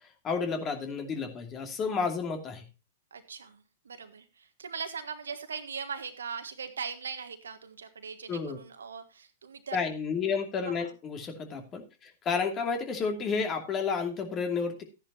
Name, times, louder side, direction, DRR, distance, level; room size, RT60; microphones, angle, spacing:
voice 1, 0.2-2.6 8.3-8.6 9.7-14.8, left 5 dB, 25° left, 4 dB, 2.7 m, -31 dB
voice 2, 3.1-9.8 10.6-10.9, right 6 dB, 75° right, 8 dB, 1.7 m, -40 dB
14.0 x 10.5 x 2.8 m, 0.31 s
figure-of-eight pair, 105°, 0 cm